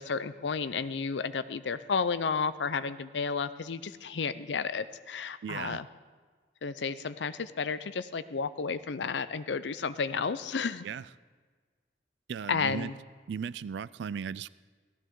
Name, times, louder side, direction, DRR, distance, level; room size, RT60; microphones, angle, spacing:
voice 1, 0.0-5.9 6.6-10.9 12.5-12.9, left 5 dB, 85° left, 14 dB, 0.6 m, -32 dB
voice 2, 5.4-5.8 10.8-11.1 12.3-12.9 13.3-14.5, right 7 dB, 80° right, 19 dB, 0.3 m, -36 dB
16.5 x 14.5 x 3.8 m, 1.5 s
head